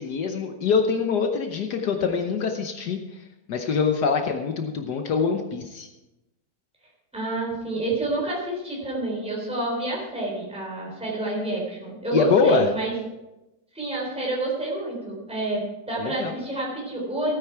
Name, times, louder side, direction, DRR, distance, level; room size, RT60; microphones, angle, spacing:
voice 1, 0.0-3.0 3.5-5.9 12.1-12.7 16.0-16.4, left 5 dB, 70° left, 4 dB, 1.5 m, -24 dB
voice 2, 7.1-12.9 13.7-17.4, right 2 dB, 5° right, -4 dB, 3.8 m, -29 dB
16.5 x 9.3 x 4.6 m, 1.0 s
omnidirectional pair, 1.8 m